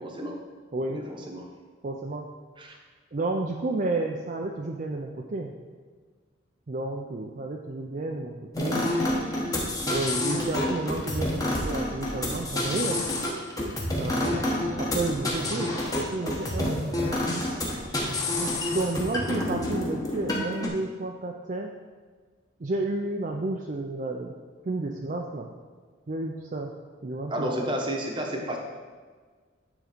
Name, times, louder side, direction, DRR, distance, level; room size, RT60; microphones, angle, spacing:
voice 1, 0.0-0.4 0.9-1.5 2.6-2.8 9.2-9.4 27.3-28.6, equal, 25° right, 1 dB, 0.9 m, -32 dB
voice 2, 1.8-2.3 3.1-5.5 6.7-9.0 9.9-13.0 14.0-16.8 18.4-21.7 22.6-24.3 24.6-25.5 26.1-26.7 27.0-27.8, right 2 dB, 40° right, 1 dB, 0.5 m, -31 dB
sound 1, 8.5-20.7, left 1 dB, 20° left, 1.1 m, -28 dB
9.3 x 3.7 x 5.0 m, 1.5 s
head